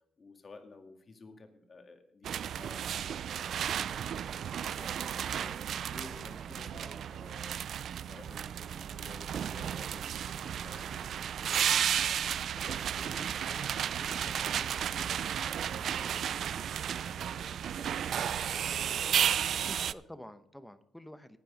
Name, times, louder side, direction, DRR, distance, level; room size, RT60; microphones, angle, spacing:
voice 1, 0.0-7.6 8.0-19.9, left 3 dB, 35° left, 5 dB, 1.9 m, -53 dB
sound 1, 2.2-19.9, right 9 dB, 65° right, 0.3 m, -33 dB
voice 2, 19.7-21.4, left 1 dB, 5° left, 12 dB, 0.8 m, -49 dB
11.0 x 9.2 x 5.1 m, 0.74 s
cardioid pair, 90°, 0 cm